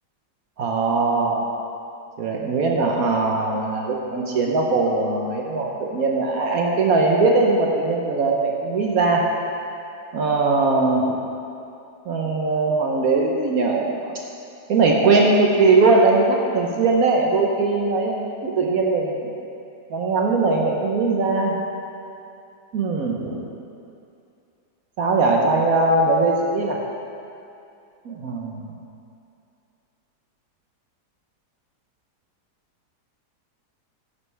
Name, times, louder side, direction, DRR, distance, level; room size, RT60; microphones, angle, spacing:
voice 1, 0.6-1.5 2.2-9.2 10.1-11.2 12.1-14.1 14.7-19.3 19.9-21.5 22.7-23.4 25.0-26.8 28.0-28.7, right 3 dB, 60° right, 0 dB, 1.2 m, -20 dB
10.0 x 9.8 x 3.3 m, 2.6 s
omnidirectional pair, 1.8 m